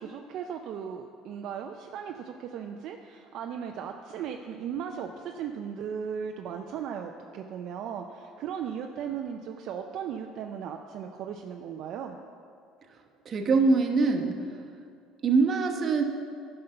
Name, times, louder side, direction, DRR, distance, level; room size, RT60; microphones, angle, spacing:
voice 1, 0.0-12.2, right 8 dB, 60° right, 3 dB, 0.5 m, -37 dB
voice 2, 13.2-14.3 15.2-16.0, right 4 dB, 40° right, 3 dB, 1.0 m, -23 dB
10.5 x 5.6 x 5.5 m, 2.3 s
supercardioid pair, 105°, 0 cm